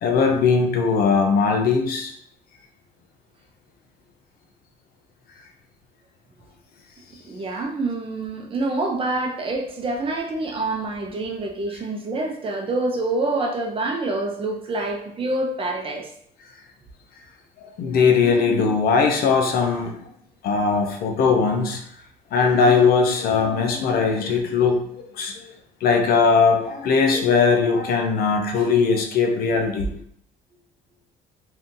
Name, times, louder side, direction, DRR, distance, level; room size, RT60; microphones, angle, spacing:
voice 1, 0.0-2.2 17.8-20.0 20.4-21.8 22.3-25.3 25.8-29.9, left 5 dB, 60° left, 3 dB, 0.6 m, -19 dB
voice 2, 7.2-16.1, right 2 dB, 35° right, 1 dB, 0.7 m, -26 dB
2.8 x 2.5 x 3.7 m, 0.67 s
cardioid pair, 110°, 17 cm